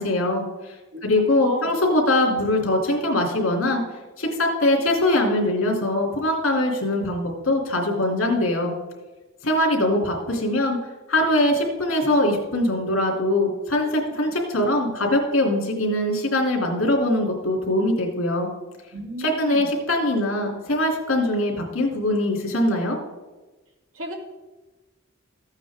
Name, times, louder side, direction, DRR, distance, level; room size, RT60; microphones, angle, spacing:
voice 1, 0.0-0.7 1.0-3.8 4.2-8.8 9.4-10.8 11.1-18.5 19.2-23.0, left 1 dB, 80° left, 0 dB, 3.0 m, -22 dB
voice 2, 1.3-1.7 18.9-19.7 23.9-24.2, right 1 dB, 90° right, -1 dB, 2.7 m, -34 dB
14.5 x 8.9 x 3.7 m, 1.2 s
head